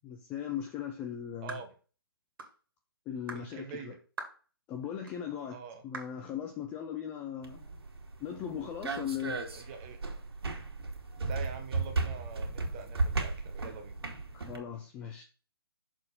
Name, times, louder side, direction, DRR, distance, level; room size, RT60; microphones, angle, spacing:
voice 1, 0.0-1.6 3.1-3.9 4.7-5.6 5.8-7.8 8.2-9.4 14.3-15.2, left 9 dB, 10° left, 0.4 m, -38 dB
sound 1, 1.5-1.7 2.4-2.6 3.3-3.5 4.2-4.4 5.1-5.2 5.9-6.2, right 4 dB, 60° right, 2.1 m, -42 dB
voice 2, 3.3-4.0 5.5-5.8 9.5-10.0 11.2-14.0, right 6 dB, 20° right, 1.1 m, -44 dB
sound 2, 7.4-14.6, right 3 dB, 85° right, 2.3 m, -35 dB
6.5 x 4.4 x 5.2 m
hypercardioid pair, 165°, 13 cm